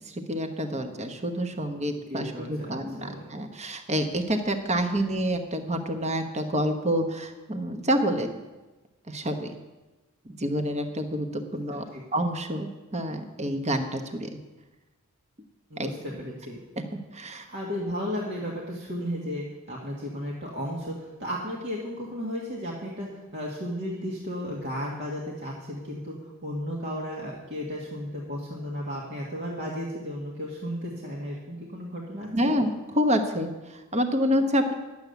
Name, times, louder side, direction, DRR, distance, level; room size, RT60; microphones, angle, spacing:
voice 1, 0.0-8.3 9.1-9.6 10.2-11.8 12.1-14.3 15.8-15.9 17.1-17.5 32.3-34.7, equal, 30° right, 6 dB, 1.1 m, -28 dB
voice 2, 2.1-3.2 11.9-12.0 15.7-16.6 17.4-26.2 26.4-32.6, equal, 55° right, -4 dB, 1.8 m, -34 dB
11.0 x 7.2 x 8.1 m, 1.1 s
head